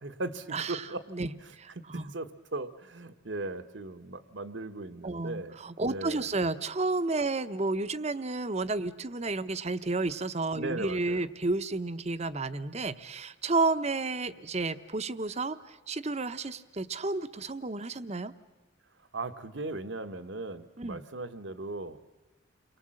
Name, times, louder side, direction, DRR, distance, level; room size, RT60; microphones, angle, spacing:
voice 1, 0.0-1.0 1.8-5.6 5.8-6.3 10.5-11.3 19.1-22.0, right 2 dB, 65° right, 10 dB, 1.2 m, -38 dB
voice 2, 0.5-2.1 5.0-18.3 20.8-21.0, right 3 dB, 35° right, 12 dB, 0.8 m, -31 dB
29.5 x 23.0 x 7.7 m, 1.1 s
head